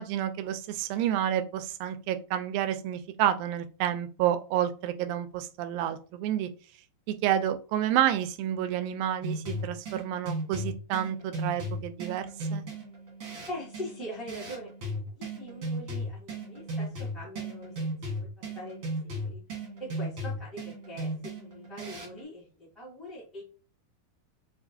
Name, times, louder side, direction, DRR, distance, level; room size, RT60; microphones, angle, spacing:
voice 1, 0.0-6.5 7.1-12.3 12.5-12.6, right 11 dB, 80° right, 9 dB, 2.2 m, -29 dB
sound 1, 9.2-22.2, right 1 dB, 60° right, 1.3 m, -36 dB
voice 2, 13.4-14.7 15.1-17.7 18.2-18.3 18.5-18.9 19.2-19.4 19.8-22.5 22.7-23.4, equal, ahead, -9 dB, 0.4 m, -42 dB
5.8 x 2.4 x 2.6 m, 0.36 s
omnidirectional pair, 4.3 m